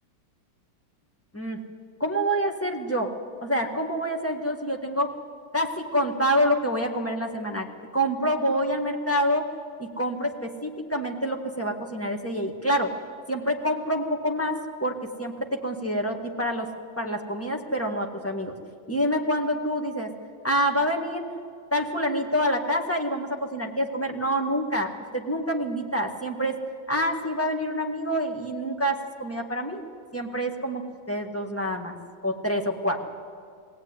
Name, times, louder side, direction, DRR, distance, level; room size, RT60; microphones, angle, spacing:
voice 1, 2.0-3.1 3.4-5.1 5.5-7.7 7.9-9.5 9.8-12.9 13.3-16.7 17.0-18.5 18.9-20.1 20.4-21.2 21.7-26.6 26.9-29.8 30.1-31.9 32.2-33.0, equal, 10° left, 2 dB, 1.5 m, -27 dB
21.5 x 17.0 x 9.7 m, 2.3 s
omnidirectional pair, 2.1 m